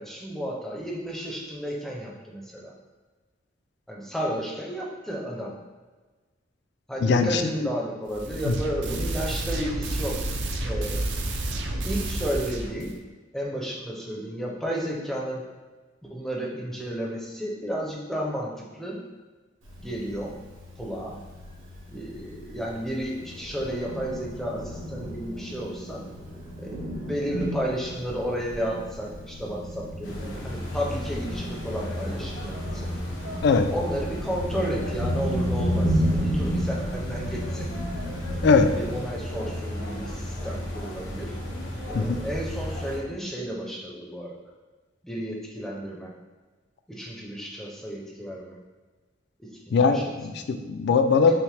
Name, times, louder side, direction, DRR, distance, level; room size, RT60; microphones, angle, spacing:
voice 1, 0.0-2.7 3.9-5.6 6.9-10.2 10.6-11.1 11.8-12.9 13.3-15.5 16.1-19.0 19.8-20.3 20.8-21.2 21.9-26.0 26.6-32.9 33.7-37.7 38.7-41.3 41.9-44.4 45.0-46.1 46.9-48.6 49.4-50.0 51.2-51.3, equal, ahead, -3 dB, 0.5 m, -32 dB
voice 2, 7.0-7.7 8.5-8.6 33.4-33.7 38.4-38.7 41.9-42.2 49.7-51.3, left 4 dB, 60° left, 8 dB, 0.3 m, -21 dB
sound 1, 8.1-13.0, right 1 dB, 65° right, 0.5 m, -30 dB
Thunder, 19.6-39.0, equal, 85° right, 1.4 m, -33 dB
sound 2, 30.0-43.0, left 1 dB, 80° left, 1.4 m, -34 dB
5.7 x 2.1 x 3.2 m, 1.3 s
head